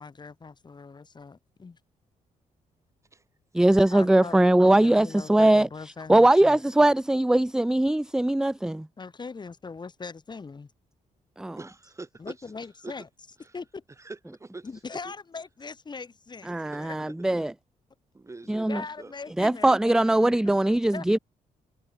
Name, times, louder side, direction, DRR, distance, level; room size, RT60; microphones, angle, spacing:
voice 1, 0.0-1.8 3.9-6.6 9.0-10.7 12.2-13.1 13.5-13.8 14.6-17.0 18.4-20.3 20.9-21.2, left 4 dB, 30° left, 6.3 m, -41 dB
voice 2, 3.5-5.7 6.1-8.9 11.4-11.6 16.5-17.5 18.5-18.8 19.4-21.2, right 1 dB, 5° right, 0.3 m, -21 dB
voice 3, 11.6-12.3 12.8-12.9 13.4-13.5 14.0-14.7 15.0-15.1 18.1-18.7 19.0-19.1, right 3 dB, 20° right, 2.8 m, -43 dB
cardioid pair, 115°, 14 cm